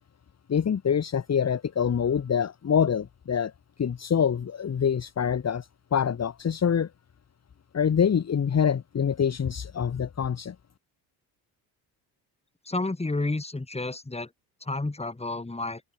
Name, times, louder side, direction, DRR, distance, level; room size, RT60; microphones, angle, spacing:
voice 1, 0.5-3.5 3.8-6.9 7.7-10.5, left 7 dB, 35° left, 1.6 m, -25 dB
voice 2, 12.7-14.3 14.6-15.8, left 2 dB, 15° left, 3.7 m, -30 dB
open air
supercardioid pair, 70°, 44 cm